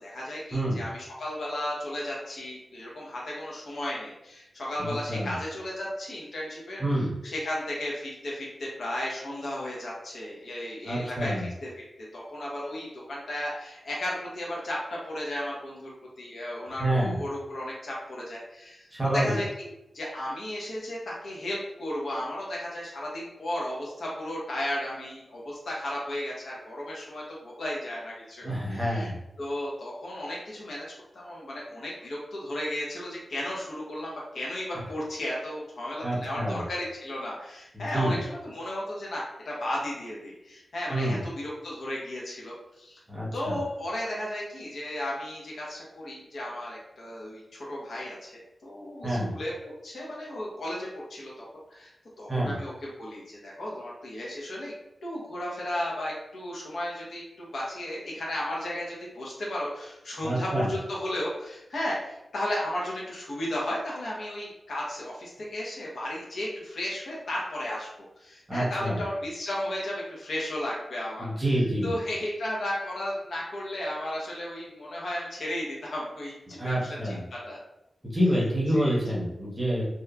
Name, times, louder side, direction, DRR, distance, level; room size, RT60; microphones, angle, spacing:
voice 1, 0.0-6.8 7.2-11.3 11.6-11.7 12.1-14.8 15.0-18.9 19.1-29.1 29.4-30.9 31.1-43.0 43.3-51.5 51.7-51.9 52.2-54.7 55.0-71.4 71.8-76.7 77.0-77.6 78.3-78.4 78.7-79.0, left 1 dB, 70° left, -5 dB, 0.6 m, -34 dB
voice 2, 4.8-5.3 6.8-7.1 10.8-11.5 16.8-17.2 18.9-19.4 28.4-29.2 36.0-36.6 37.7-38.2 40.9-41.2 43.1-43.6 49.0-49.3 52.3-52.5 60.2-60.7 68.5-69.0 71.2-71.9 76.6-77.2 78.0-79.9, right 1 dB, 15° right, -5 dB, 0.7 m, -27 dB
2.8 x 2.1 x 2.3 m, 0.90 s
wide cardioid pair, 180°, 0 cm